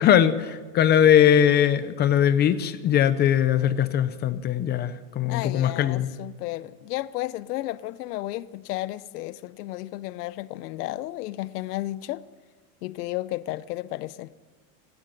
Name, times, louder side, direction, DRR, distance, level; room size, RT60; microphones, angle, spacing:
voice 1, 0.0-6.1, left 9 dB, 20° left, 0.6 m, -20 dB
voice 2, 5.3-12.2 12.8-14.3, left 16 dB, 85° left, 1.0 m, -33 dB
28.0 x 12.0 x 9.2 m
supercardioid pair, 165°, 45 cm